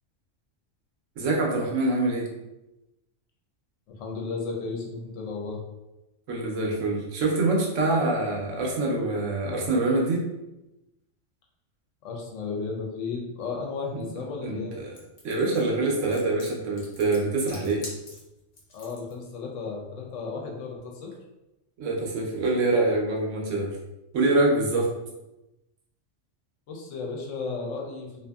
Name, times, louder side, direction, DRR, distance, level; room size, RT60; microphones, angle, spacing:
voice 1, 1.2-2.3 6.3-10.3 13.9-14.0 14.4-15.0 15.2-17.8 21.8-23.7 24.1-24.9, right 2 dB, 85° right, -2 dB, 1.0 m, -25 dB
voice 2, 3.9-5.6 12.0-14.7 18.7-21.1 26.7-28.3, left 4 dB, 80° left, -1 dB, 0.9 m, -34 dB
sound 1, 14.9-19.1, left 1 dB, 55° left, 1.0 m, -44 dB
2.6 x 2.6 x 2.3 m, 0.97 s
omnidirectional pair, 1.3 m